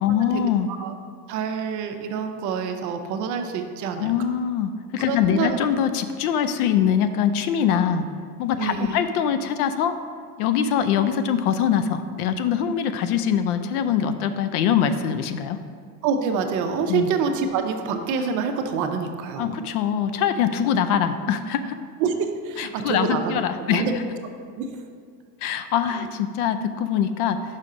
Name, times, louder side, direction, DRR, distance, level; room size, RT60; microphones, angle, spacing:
voice 1, 0.0-0.7 3.9-8.0 8.4-10.0 10.4-15.6 16.9-17.1 19.4-21.8 22.6-23.9 25.4-27.4, left 8 dB, 70° left, 10 dB, 0.6 m, -23 dB
voice 2, 1.3-4.1 5.1-5.6 8.6-9.0 16.0-19.6 22.0-23.4 23.7-24.0 24.6-24.8, right 6 dB, 40° right, 5 dB, 0.6 m, -26 dB
5.7 x 5.2 x 4.9 m, 2.1 s
supercardioid pair, 130°, 47 cm